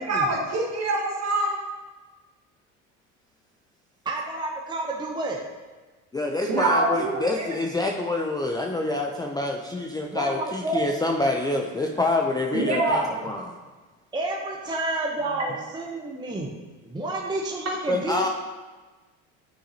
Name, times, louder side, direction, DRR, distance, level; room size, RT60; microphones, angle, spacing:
voice 1, 0.0-1.6 6.5-7.5 12.5-13.1, right 2 dB, 45° right, -2 dB, 2.0 m, -25 dB
voice 2, 4.0-5.4 10.1-10.8 12.7-13.3 14.1-16.5 16.8-18.3, right 2 dB, 10° right, 0 dB, 0.8 m, -30 dB
voice 3, 6.1-13.6 17.9-18.3, left 2 dB, 10° left, 1 dB, 0.5 m, -26 dB
8.3 x 5.8 x 2.8 m, 1.3 s
supercardioid pair, 85°, 38 cm